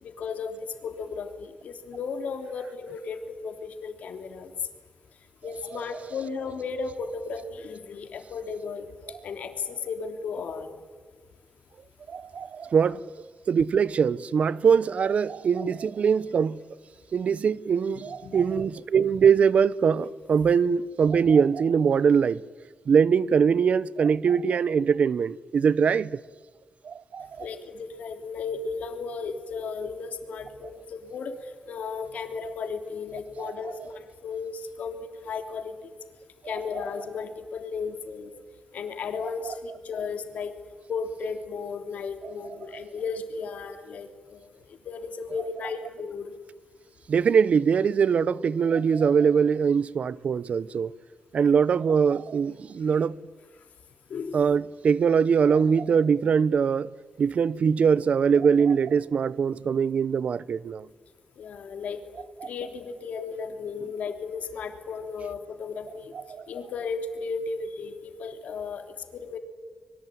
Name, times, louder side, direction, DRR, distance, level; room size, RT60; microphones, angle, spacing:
voice 1, 0.0-4.5 5.4-8.9 9.2-10.8 18.2-18.4 27.4-35.9 36.5-38.3 38.7-40.5 40.9-44.5 44.8-46.3 54.1-54.4 61.4-62.0 62.4-66.1 66.5-68.8 69.1-69.4, left 5 dB, 75° left, 3.2 m, -35 dB
voice 2, 12.1-13.0 13.5-16.6 17.1-22.4 22.9-26.2 26.8-27.4 42.2-42.3 42.7-42.8 47.1-50.9 51.3-53.2 54.3-56.9 57.2-60.9 62.4-62.5 66.1-66.4, right 6 dB, 65° right, 0.8 m, -22 dB
25.0 x 23.0 x 9.3 m
cardioid pair, 70°, 2 cm